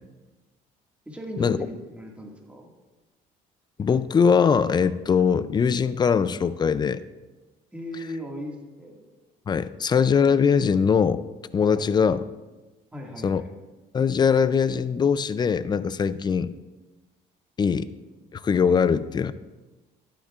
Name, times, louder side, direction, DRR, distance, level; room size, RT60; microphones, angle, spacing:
voice 1, 1.1-2.7 7.7-9.1 11.8-11.9 12.9-13.5, equal, 5° right, -1 dB, 1.9 m, -37 dB
voice 2, 3.8-7.0 9.5-11.2 11.5-12.2 13.2-13.4 13.9-16.5 17.6-17.9 18.3-19.3, left 6 dB, 25° left, 15 dB, 0.4 m, -21 dB
12.0 x 10.0 x 2.4 m, 1.2 s
cardioid pair, 110°, 17 cm